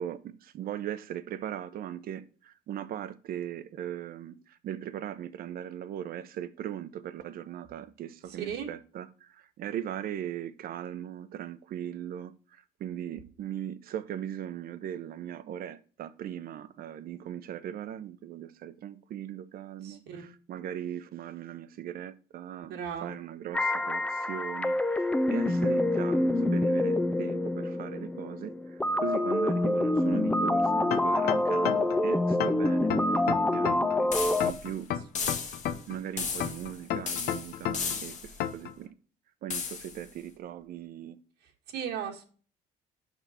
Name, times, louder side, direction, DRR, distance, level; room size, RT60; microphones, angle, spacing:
voice 1, 0.0-34.1 34.4-34.9 35.9-38.9 39.4-41.2, right 10 dB, 60° right, 0.8 m, -39 dB
voice 2, 8.3-8.7 19.8-20.3 22.7-23.2 41.7-42.2, right 8 dB, 85° right, 1.5 m, -36 dB
sound 1, 23.5-34.5, left 1 dB, 5° left, 0.5 m, -26 dB
sound 2, 30.9-32.0 32.4-34.0 34.4-36.0 36.4-38.0 38.4-38.7, left 10 dB, 65° left, 0.7 m, -31 dB
sound 3, 34.1-34.7 35.1-35.8 36.2-36.8 37.1-38.4 39.5-40.0, left 6 dB, 45° left, 1.4 m, -35 dB
6.9 x 5.8 x 4.2 m
cardioid pair, 110°, 17 cm